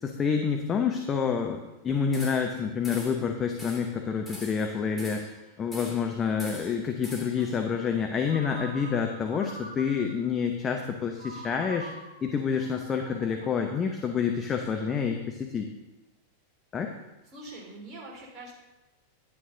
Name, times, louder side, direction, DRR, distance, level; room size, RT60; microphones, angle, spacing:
voice 1, 0.0-5.3 5.6-11.9 12.2-15.7 16.7-16.9, left 6 dB, 25° left, 4 dB, 0.8 m, -28 dB
sound 1, 2.1-2.6 2.8-3.2 3.6-3.9 4.2-5.4 5.7-6.1 6.4-7.5, left 1 dB, 5° left, 2.6 m, -43 dB
voice 2, 7.4-7.8 17.3-18.5, right 2 dB, 25° right, -2 dB, 3.3 m, -45 dB
Ringtone, 8.3-10.3 11.2-14.5, right 2 dB, 75° right, 2.0 m, -45 dB
10.5 x 9.1 x 3.9 m, 1.0 s
figure-of-eight pair, 90°, 0 cm